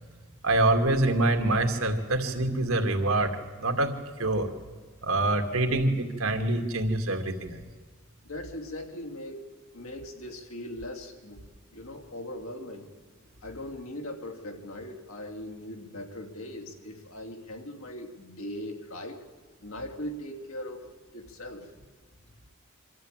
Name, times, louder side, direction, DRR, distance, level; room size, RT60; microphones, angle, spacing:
voice 1, 0.4-3.3 3.6-3.9 4.2-4.5 5.0-7.6, right 2 dB, 75° right, 5 dB, 2.3 m, -25 dB
voice 2, 8.2-11.4 11.7-12.9 13.4-19.2 19.6-20.8 21.1-21.7, left 1 dB, 75° left, 3 dB, 2.8 m, -40 dB
25.0 x 13.0 x 9.0 m, 1.5 s
head